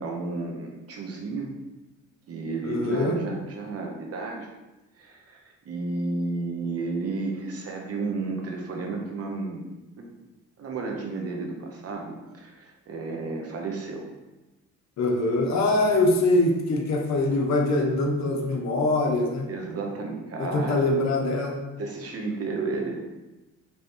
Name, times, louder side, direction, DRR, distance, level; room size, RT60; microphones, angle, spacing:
voice 1, 0.0-1.5 2.3-4.5 5.0-9.7 10.0-10.1 10.6-14.1 19.5-21.0 21.8-23.0, right 3 dB, 50° right, 2 dB, 1.0 m, -32 dB
voice 2, 2.6-3.2 15.0-19.5 20.4-21.6, left 2 dB, 65° left, 1 dB, 1.0 m, -23 dB
5.3 x 3.1 x 3.1 m, 1.1 s
cardioid pair, 90°, 30 cm